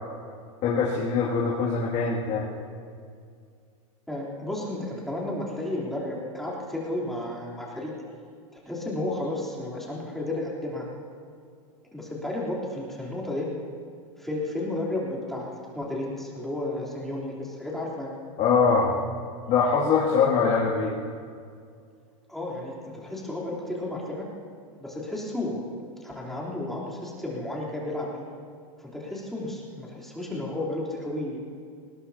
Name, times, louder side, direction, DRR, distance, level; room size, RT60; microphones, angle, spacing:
voice 1, 0.6-2.5 18.4-18.9 19.5-20.9, left 5 dB, 40° left, -6 dB, 2.6 m, -23 dB
voice 2, 4.1-7.9 8.5-10.8 11.9-13.5 14.2-18.1 22.3-24.3 24.8-25.6 26.0-28.3 28.8-31.4, left 1 dB, ahead, -6 dB, 3.6 m, -32 dB
20.0 x 20.0 x 2.9 m, 2.2 s
supercardioid pair, 130°, 18 cm